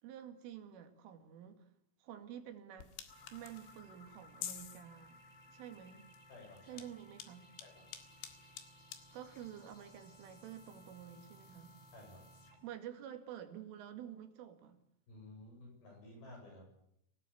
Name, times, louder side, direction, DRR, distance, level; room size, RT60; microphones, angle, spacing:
voice 1, 0.0-1.7 2.0-2.9 3.3-5.2 5.5-6.1 6.6-7.5 9.1-11.7 12.6-14.8, right 10 dB, 90° right, 4.8 m, -50 dB
sound 1, 2.8-12.5, left 10 dB, 85° left, 4.4 m, -53 dB
sound 2, 3.1-12.8, equal, 30° left, 7.4 m, -60 dB
voice 2, 6.3-6.8 7.6-7.8 11.9-12.2 15.1-16.6, left 2 dB, 50° left, 9.0 m, -54 dB
28.0 x 18.0 x 8.5 m
omnidirectional pair, 5.5 m